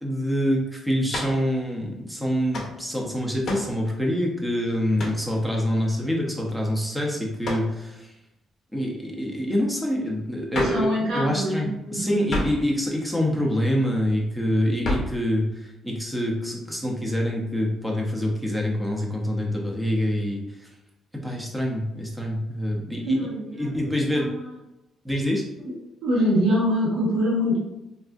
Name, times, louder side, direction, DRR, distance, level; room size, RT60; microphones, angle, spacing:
voice 1, 0.0-8.1 8.7-20.4 21.2-23.2 23.5-24.3 25.0-25.4, equal, 5° right, -1 dB, 0.6 m, -26 dB
sound 1, 1.1-1.4 2.5-2.8 3.4-3.8 5.0-5.3 7.4-7.7 10.5-10.9 12.3-12.7 14.8-15.2, left 1 dB, 45° left, 0.6 m, -29 dB
voice 2, 10.5-12.4 23.1-24.5 25.6-25.7 26.0-27.6, equal, 75° right, -6 dB, 1.1 m, -25 dB
3.4 x 2.5 x 2.4 m, 0.94 s
cardioid pair, 135°, 0 cm